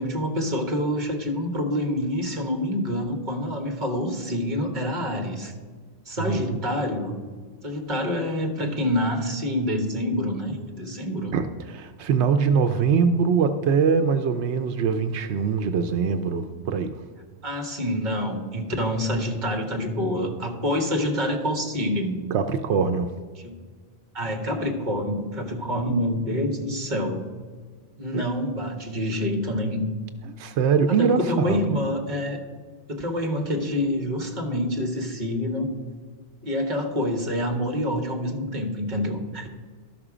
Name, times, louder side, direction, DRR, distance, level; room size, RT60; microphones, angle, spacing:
voice 1, 0.0-5.5 6.1-7.2 7.6-11.3 17.4-22.2 23.3-23.5 24.1-27.2 28.0-29.8 30.9-32.4 32.9-35.7 36.4-39.5, left 1 dB, 45° right, 3 dB, 1.5 m, -27 dB
voice 2, 11.3-16.9 22.3-23.1 28.1-28.2 30.2-31.6, right 6 dB, 85° right, 8 dB, 0.9 m, -23 dB
12.5 x 6.0 x 4.9 m, 1.5 s
omnidirectional pair, 1.1 m